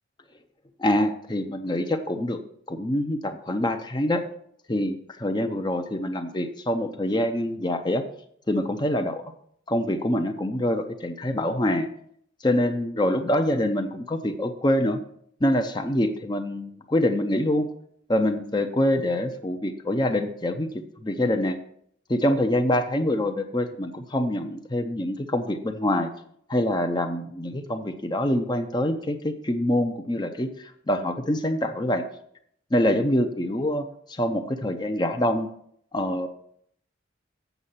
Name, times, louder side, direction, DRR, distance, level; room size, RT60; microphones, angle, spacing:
voice 1, 0.8-2.4 2.7-4.2 4.7-8.0 8.5-9.2 9.7-11.9 12.4-15.0 15.4-17.7 18.1-20.7 21.0-21.6 22.1-26.1 26.5-32.0 32.7-35.5 35.9-36.3, left 1 dB, 20° left, 6 dB, 0.6 m, -25 dB
8.1 x 6.2 x 5.7 m, 0.66 s
head